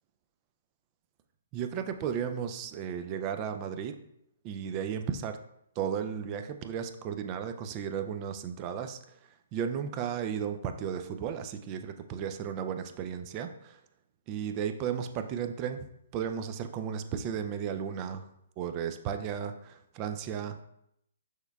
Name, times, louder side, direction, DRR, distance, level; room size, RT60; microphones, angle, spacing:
voice 1, 1.5-4.0 4.4-5.4 5.8-9.2 9.5-13.8 14.3-15.9 16.1-18.3 18.6-20.6, right 8 dB, 30° right, 8 dB, 0.4 m, -34 dB
6.2 x 3.4 x 2.3 m, 0.76 s
figure-of-eight pair, 130°, 0 cm